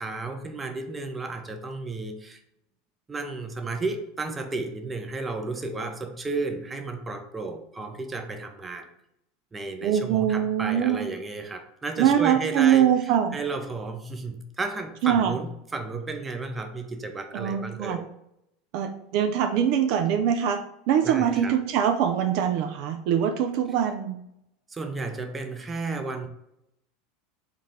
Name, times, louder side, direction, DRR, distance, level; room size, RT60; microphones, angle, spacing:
voice 1, 0.0-2.4 3.1-8.9 9.5-12.9 13.3-18.0 21.0-21.6 24.7-26.3, right 3 dB, 20° right, 6 dB, 0.6 m, -33 dB
voice 2, 9.8-11.0 12.0-13.3 15.0-15.3 17.3-18.0 18.7-20.6 20.9-24.2, right 9 dB, 60° right, 7 dB, 0.3 m, -23 dB
3.7 x 2.4 x 4.1 m, 0.80 s
hypercardioid pair, 90°, 0 cm